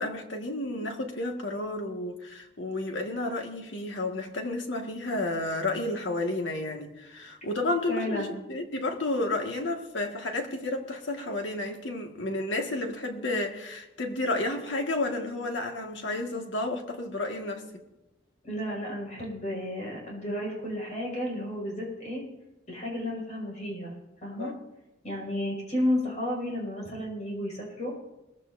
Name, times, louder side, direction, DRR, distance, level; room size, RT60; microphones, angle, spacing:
voice 1, 0.0-17.6 24.4-24.6, left 2 dB, 75° left, 1.8 m, -31 dB
voice 2, 7.9-8.3 18.4-22.2 22.7-24.0 24.2-24.5 25.0-27.9, left 1 dB, 40° left, 5.6 m, -32 dB
21.0 x 15.0 x 2.7 m
head